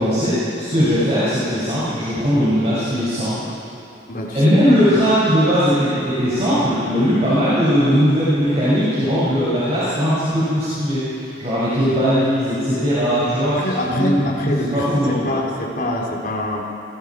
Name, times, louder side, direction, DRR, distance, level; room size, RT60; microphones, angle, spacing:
voice 1, 0.0-3.4 4.3-15.3, equal, 35° right, -11 dB, 6.9 m, -19 dB
voice 2, 4.1-4.5 13.0-16.6, left 1 dB, 50° left, -2 dB, 3.8 m, -25 dB
28.0 x 22.0 x 4.9 m, 2.6 s
head